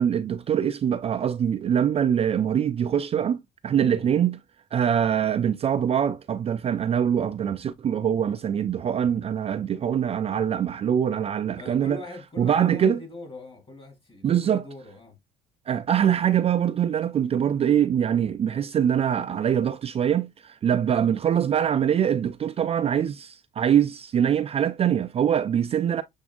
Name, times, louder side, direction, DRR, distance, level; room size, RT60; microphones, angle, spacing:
voice 1, 0.0-4.4 4.7-12.0 12.4-13.0 14.2-14.7 15.7-26.0, right 9 dB, 35° right, 0.4 m, -23 dB
voice 2, 3.8-4.2 11.6-15.2, left 2 dB, 30° left, 2.8 m, -42 dB
6.9 x 2.6 x 2.3 m
cardioid pair, 110°, 17 cm